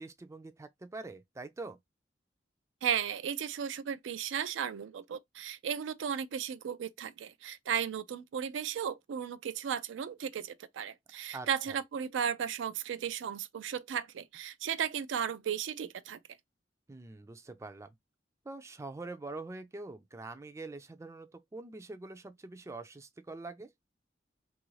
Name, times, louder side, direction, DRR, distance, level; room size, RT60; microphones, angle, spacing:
voice 1, 0.0-1.8 11.3-11.8 16.9-17.9 18.5-23.7, right 3 dB, 15° right, 0.4 m, -44 dB
voice 2, 2.8-16.2, right 8 dB, 90° right, 0.4 m, -35 dB
3.0 x 2.5 x 3.1 m
head